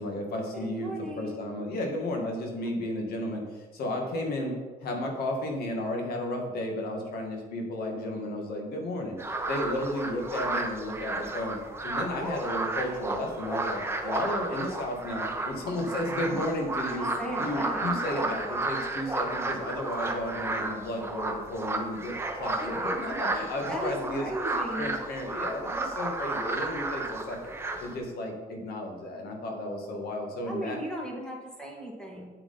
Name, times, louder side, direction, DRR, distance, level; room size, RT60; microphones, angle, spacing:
voice 1, 0.0-9.2 9.5-11.6 11.8-17.1 17.4-24.3 24.8-27.5 27.8-30.8, left 1 dB, 65° left, 2 dB, 2.1 m, -33 dB
voice 2, 0.5-1.6 12.1-12.4 17.0-17.9 22.6-23.0 23.7-25.0 30.5-32.3, right 1 dB, 5° left, -2 dB, 2.4 m, -36 dB
sound 1, 9.2-27.9, right 2 dB, 15° right, 1.0 m, -32 dB
7.9 x 7.7 x 4.3 m, 1.3 s
cardioid pair, 110°, 17 cm